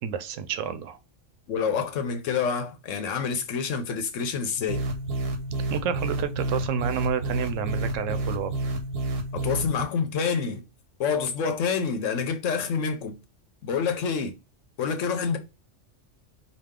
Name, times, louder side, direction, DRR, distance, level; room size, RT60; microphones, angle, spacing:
voice 1, 0.0-1.0 5.7-8.5, right 7 dB, 85° right, 1.0 m, -29 dB
voice 2, 1.5-4.8 9.3-10.6 11.0-13.2 13.6-14.3 14.8-15.4, left 6 dB, 80° left, 1.1 m, -27 dB
sound 1, 4.7-9.8, right 2 dB, 60° right, 0.9 m, -29 dB
5.0 x 2.3 x 3.6 m
omnidirectional pair, 1.3 m